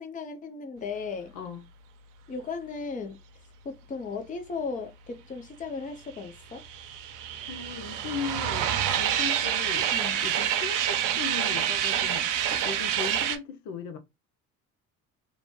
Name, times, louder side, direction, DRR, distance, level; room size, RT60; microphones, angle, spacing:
voice 1, 0.0-1.3 2.3-3.2 3.6-6.6 9.9-10.2, left 4 dB, 20° left, 0.6 m, -36 dB
voice 2, 1.3-1.6 7.5-8.7 9.0-9.9 10.2-14.0, left 6 dB, 65° left, 0.7 m, -37 dB
sound 1, 6.2-13.4, right 10 dB, 55° right, 0.6 m, -27 dB
2.6 x 2.1 x 3.1 m
hypercardioid pair, 60°, 39 cm